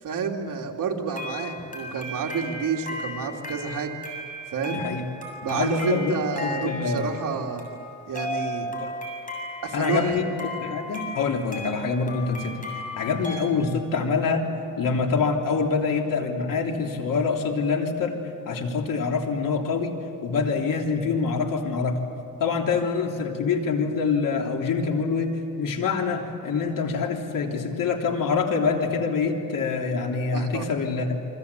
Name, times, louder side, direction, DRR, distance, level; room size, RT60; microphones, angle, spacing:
voice 1, 0.0-3.9 4.5-4.8 5.4-7.7 8.1-8.7 9.6-10.1 30.3-30.7, right 5 dB, 75° right, 0 dB, 3.0 m, -29 dB
sound 1, 1.1-13.4, left 1 dB, 25° left, 7.4 m, -36 dB
voice 2, 4.7-5.0 5.4-6.1 6.4-7.0 8.8-8.9 9.7-10.3 10.6-12.5 13.0-14.4 14.8-18.1 18.4-19.9 20.2-22.0 22.4-31.2, left 5 dB, 80° left, 1 dB, 3.4 m, -25 dB
28.0 x 24.5 x 8.4 m, 2.6 s
cardioid pair, 120°, 33 cm